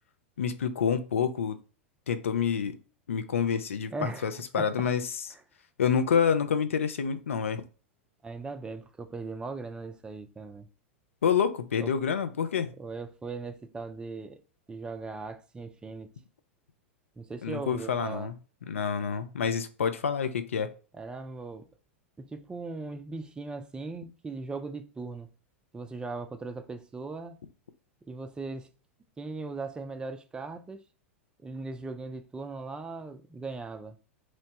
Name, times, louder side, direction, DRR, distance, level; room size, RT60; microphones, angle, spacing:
voice 1, 0.4-1.6 2.1-2.8 3.1-5.0 5.8-7.6 11.2-12.7 17.4-18.3 18.7-20.7, left 7 dB, 80° left, 0.4 m, -28 dB
voice 2, 3.9-4.3 4.6-4.7 8.2-10.7 11.8-11.9 12.8-14.4 14.7-16.1 17.2-18.3 21.0-21.7 22.2-25.3 25.7-27.4 28.1-28.7 29.2-30.8 31.4-34.0, right 3 dB, 10° right, 0.4 m, -39 dB
3.0 x 2.1 x 2.8 m
figure-of-eight pair, 95°, 7 cm